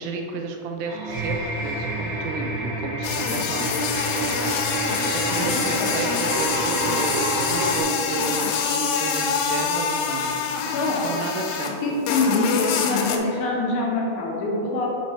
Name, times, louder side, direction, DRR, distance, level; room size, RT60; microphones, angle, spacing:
voice 1, 0.0-3.7 5.0-11.7, right 4 dB, 80° right, 3 dB, 2.3 m, -32 dB
sound 1, 0.8-7.8, right 2 dB, 65° right, 1.8 m, -28 dB
sound 2, 3.0-11.8 12.1-13.2, left 6 dB, 85° left, 2.5 m, -25 dB
voice 2, 5.4-5.9 10.7-11.2 11.8-14.9, left 2 dB, 70° left, -3 dB, 1.9 m, -25 dB
5.7 x 4.4 x 4.2 m, 2.9 s
omnidirectional pair, 4.4 m